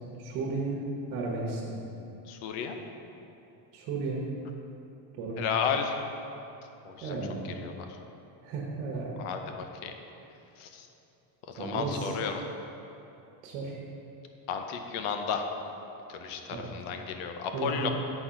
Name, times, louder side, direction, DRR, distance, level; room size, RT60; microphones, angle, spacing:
voice 1, 0.2-0.8 1.1-1.7 3.7-4.3 5.1-5.5 7.0-7.6 8.4-9.2 11.6-12.1 13.4-13.7 16.5-16.7 17.5-17.9, right 3 dB, 90° right, -2 dB, 1.2 m, -34 dB
voice 2, 2.3-2.8 5.4-6.0 6.9-7.2 7.6-7.9 9.2-9.9 10.6-10.9 11.5-12.4 14.5-15.4 16.1-17.9, left 6 dB, 85° left, 5 dB, 0.9 m, -33 dB
7.9 x 4.4 x 5.1 m, 2.9 s
cardioid pair, 130°, 48 cm